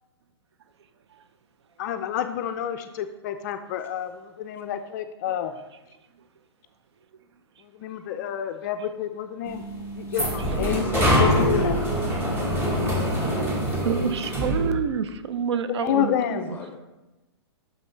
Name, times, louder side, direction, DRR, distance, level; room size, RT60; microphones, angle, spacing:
voice 1, 1.8-4.1 4.4-5.5 7.8-9.6 10.0-10.9 11.2-11.8 15.8-16.5, left 10 dB, 40° left, 8 dB, 0.4 m, -28 dB
sound 1, 9.5-14.7, equal, 15° right, 1.2 m, -24 dB
voice 2, 10.1-11.5 16.5-16.8, left 4 dB, 15° left, 3 dB, 0.9 m, -36 dB
voice 3, 13.8-16.6, right 7 dB, 70° right, 11 dB, 0.5 m, -28 dB
6.1 x 5.4 x 3.1 m, 1.0 s
hypercardioid pair, 130°, 15 cm